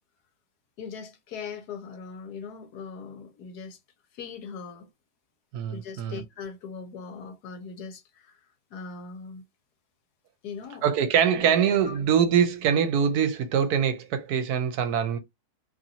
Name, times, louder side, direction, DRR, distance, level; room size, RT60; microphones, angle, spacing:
voice 1, 0.8-3.8 4.1-4.9 5.7-8.4 8.7-9.4 10.4-10.8 11.3-11.5 11.8-12.0, left 5 dB, 75° left, 1.3 m, -40 dB
voice 2, 5.5-6.2 10.8-15.2, right 8 dB, 75° right, 1.1 m, -23 dB
3.0 x 2.6 x 2.7 m
omnidirectional pair, 1.7 m